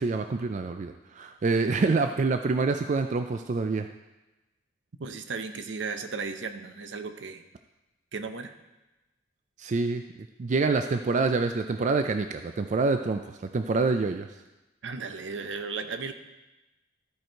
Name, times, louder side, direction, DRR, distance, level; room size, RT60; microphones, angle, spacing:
voice 1, 0.0-3.9 9.6-10.0 10.4-13.2 13.5-14.3, right 3 dB, 40° right, 7 dB, 0.4 m, -26 dB
voice 2, 5.0-7.4 8.1-8.5 14.8-16.1, right 4 dB, 70° right, 8 dB, 0.7 m, -35 dB
13.5 x 4.8 x 4.5 m, 1.0 s
head